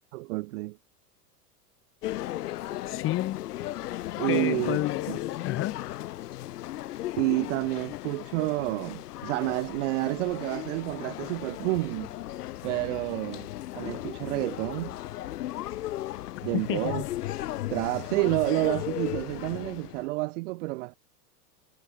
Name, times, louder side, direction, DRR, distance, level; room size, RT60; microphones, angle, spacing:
voice 1, 0.1-0.8 4.2-4.8 5.1-5.2 7.2-12.1 12.6-13.5 13.8-15.0 16.4-17.0 17.7-21.0, right 22 dB, 50° right, 0.5 m, -29 dB
sound 1, 2.0-20.1, left 14 dB, 70° left, 2.0 m, -36 dB
voice 2, 2.9-3.4 4.2-5.8 16.5-17.1, left 16 dB, 25° left, 0.7 m, -30 dB
hypercardioid pair, 110°, 48 cm